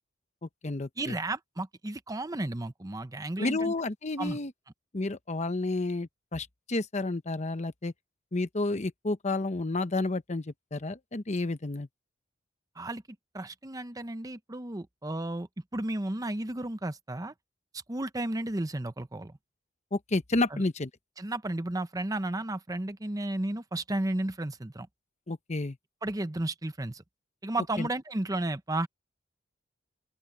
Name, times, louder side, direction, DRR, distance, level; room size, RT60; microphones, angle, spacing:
voice 1, 0.4-1.2 3.4-4.5 4.9-7.9 8.3-11.9 19.9-20.9 25.3-25.8 27.8-27.9, left 2 dB, 35° left, 0.9 m, -31 dB
voice 2, 1.0-3.7 4.2-4.4 12.8-13.0 13.3-17.3 17.9-19.3 20.5-20.6 21.2-24.9 26.0-27.0 27.4-28.9, right 1 dB, 20° right, 0.8 m, -33 dB
open air
head